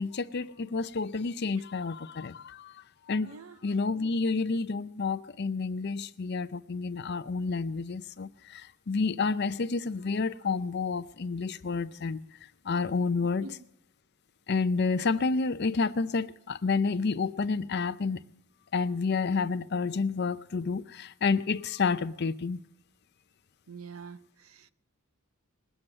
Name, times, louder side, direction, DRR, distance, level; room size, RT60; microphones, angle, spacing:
voice 1, 0.0-3.3 3.6-12.2 12.6-13.5 14.5-18.2 18.7-22.6, left 4 dB, 50° left, 0.6 m, -30 dB
voice 2, 3.2-3.6 13.2-13.6 23.7-24.7, right 4 dB, 85° right, 0.7 m, -46 dB
20.5 x 8.0 x 8.8 m
head